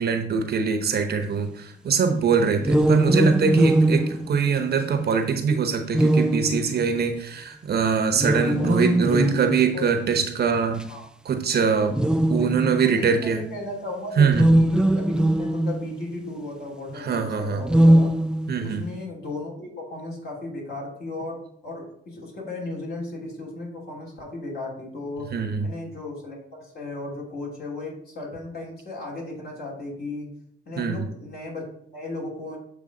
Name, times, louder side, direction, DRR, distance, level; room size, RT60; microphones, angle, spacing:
voice 1, 0.0-10.8 11.3-11.9 12.3-13.4 14.2-14.5 17.0-17.6 18.5-18.8 25.3-25.7 30.8-31.0, right 5 dB, 55° right, 7 dB, 0.9 m, -23 dB
sound 1, 2.6-5.0 5.9-7.2 8.1-10.0 10.8-10.9 11.9-12.9 14.2-16.0 17.6-18.8, right 1 dB, 5° right, 0.3 m, -21 dB
voice 2, 12.8-18.1 18.6-25.3 25.6-30.3 30.6-32.6, left 2 dB, 55° left, -3 dB, 3.1 m, -35 dB
7.5 x 3.2 x 5.2 m, 0.68 s
cardioid pair, 90°, 20 cm